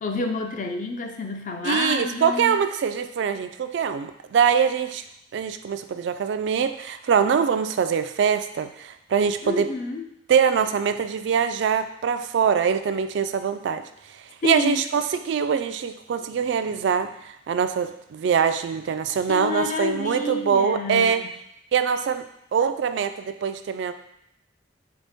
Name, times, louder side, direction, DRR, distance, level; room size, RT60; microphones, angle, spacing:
voice 1, 0.0-2.6 9.4-10.1 14.4-14.8 19.3-21.3, left 4 dB, 40° left, 4 dB, 0.5 m, -29 dB
voice 2, 1.6-5.0 5.3-9.7 10.3-13.8 14.4-17.1 17.5-21.2 21.7-22.2 22.5-23.9, right 7 dB, 70° right, 10 dB, 0.3 m, -23 dB
4.0 x 3.6 x 3.5 m, 0.78 s
head